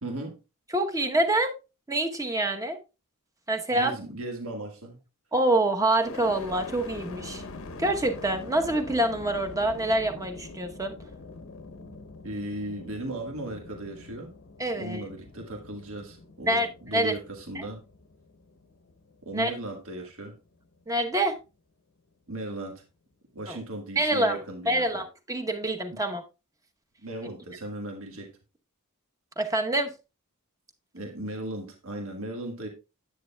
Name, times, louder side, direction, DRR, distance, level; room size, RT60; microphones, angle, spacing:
voice 1, 0.0-0.4 3.7-5.0 12.2-14.3 14.7-17.8 19.2-20.4 22.3-22.8 23.3-24.9 25.9-26.0 27.0-28.3 30.9-32.7, right 1 dB, 65° right, 1.6 m, -37 dB
voice 2, 0.7-1.5 1.9-2.8 3.5-4.0 5.3-7.4 7.8-11.0 14.6-15.0 16.5-17.1 17.5-17.7 19.3-19.5 20.9-21.4 23.5-23.6 24.0-24.4 24.7-26.2 29.4-29.9, right 1 dB, 15° right, 0.9 m, -26 dB
sound 1, 6.0-20.0 20.5-21.2, left 3 dB, 65° left, 0.7 m, -44 dB
9.5 x 8.5 x 2.2 m
head